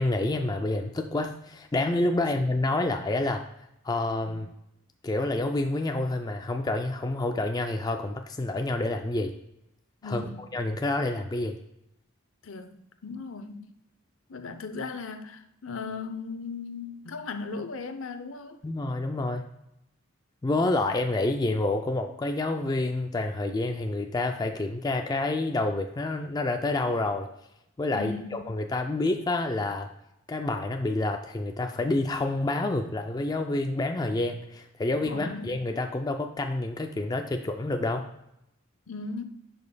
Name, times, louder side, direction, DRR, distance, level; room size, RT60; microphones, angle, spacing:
voice 1, 0.0-3.4 3.8-4.5 5.0-9.3 10.0-10.2 10.5-11.6 18.6-19.5 20.4-27.3 27.8-29.9 30.3-38.1, left 2 dB, 20° left, 5 dB, 0.3 m, -28 dB
voice 2, 10.0-10.4 12.4-13.7 14.3-18.6 27.9-28.4 35.1-35.5 38.9-39.2, left 4 dB, 70° left, 8 dB, 0.6 m, -37 dB
10.5 x 5.2 x 2.2 m, 0.82 s
head